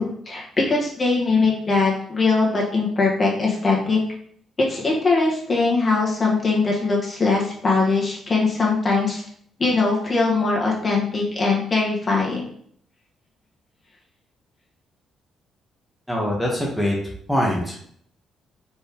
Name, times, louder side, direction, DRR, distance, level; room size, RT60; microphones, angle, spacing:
voice 1, 0.0-4.0 4.6-9.2 9.6-12.4, left 3 dB, 35° left, -3 dB, 1.4 m, -21 dB
voice 2, 16.1-17.0 17.3-17.8, equal, ahead, -2 dB, 1.2 m, -23 dB
4.4 x 3.2 x 3.5 m, 0.62 s
cardioid pair, 90°, 0 cm